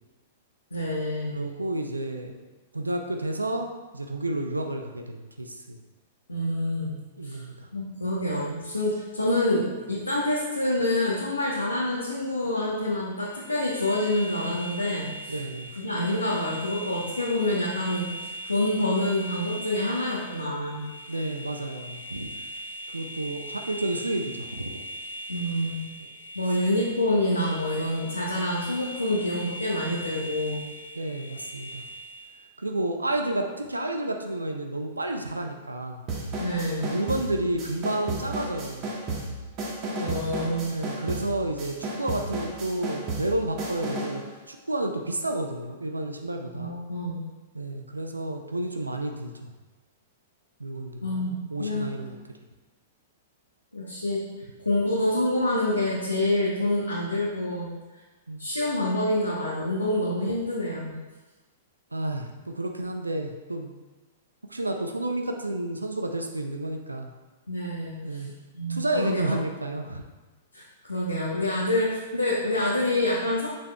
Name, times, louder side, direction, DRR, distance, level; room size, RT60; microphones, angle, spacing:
voice 1, 0.7-1.4 6.3-7.0 7.2-7.4 7.7-15.3 15.8-20.8 25.3-25.8 26.3-30.6 36.4-36.9 40.0-40.8 46.5-47.2 51.0-51.9 53.7-54.2 54.6-57.7 58.4-60.9 67.5-68.2 68.5-69.3 70.5-73.5, left 1 dB, 80° left, -5 dB, 1.0 m, -27 dB
voice 2, 1.3-2.3 2.7-3.7 3.9-5.8 7.2-7.7 15.3-15.7 21.1-22.3 22.9-24.8 31.0-31.9 32.6-36.0 36.8-39.2 40.7-46.7 47.5-49.5 50.6-52.2 58.3-58.5 61.9-63.7 64.5-67.1 68.0-68.3 68.7-70.0, right 1 dB, 80° right, 4 dB, 0.5 m, -31 dB
sound 1, 13.2-32.5, right 1 dB, 65° left, 0.4 m, -40 dB
sound 2, 36.1-44.2, right 2 dB, 35° right, 1.3 m, -33 dB
6.8 x 6.0 x 2.4 m, 1.2 s
figure-of-eight pair, 105°, 0 cm